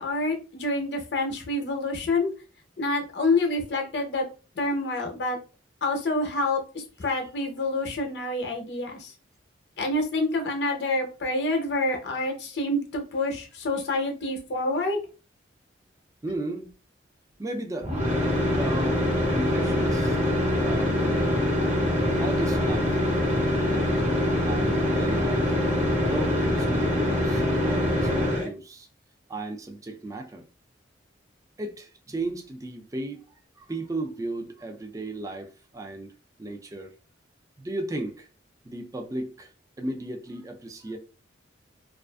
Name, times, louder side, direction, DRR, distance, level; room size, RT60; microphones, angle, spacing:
voice 1, 0.0-2.3 2.8-4.3 4.6-5.4 5.8-9.1 9.8-15.0, left 2 dB, 60° left, 0.7 m, -27 dB
voice 2, 16.2-16.7 17.4-17.9 18.5-19.0 19.3-20.2 20.6-21.4 22.2-23.0 23.5-23.9 24.4-25.6 25.9-28.9 29.3-30.4 31.6-33.2 33.6-36.1 36.4-36.9 37.6-38.3 38.6-39.5 39.8-41.0, right 2 dB, 15° right, 0.3 m, -35 dB
sound 1, 17.8-28.5, left 1 dB, 40° right, 0.9 m, -24 dB
2.4 x 2.4 x 2.2 m
head